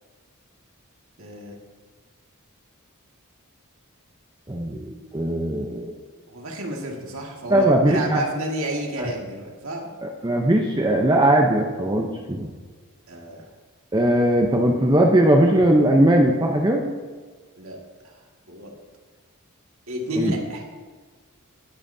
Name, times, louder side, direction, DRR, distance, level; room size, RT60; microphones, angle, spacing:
voice 1, 1.2-1.6 6.3-9.9 13.1-13.5 17.6-17.8 18.0-18.1 18.5-18.7 19.9-20.6, right 1 dB, 70° right, 0 dB, 2.0 m, -30 dB
voice 2, 4.5-5.9 7.5-8.2 9.0-9.1 10.0-12.5 13.9-16.9 20.2-20.3, right 1 dB, 20° right, 1 dB, 0.8 m, -19 dB
19.0 x 8.9 x 2.8 m, 1.4 s
head